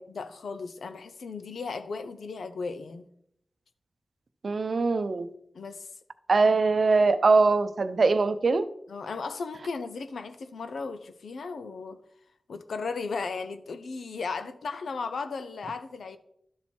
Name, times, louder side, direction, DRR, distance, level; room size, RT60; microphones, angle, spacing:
voice 1, 0.1-3.1 5.5-5.9 8.9-12.0 12.5-16.2, left 4 dB, 85° left, 0.6 m, -35 dB
voice 2, 4.4-5.3 6.3-8.7, right 3 dB, 65° right, 0.6 m, -22 dB
12.0 x 4.5 x 4.4 m
cardioid pair, 65°, 0 cm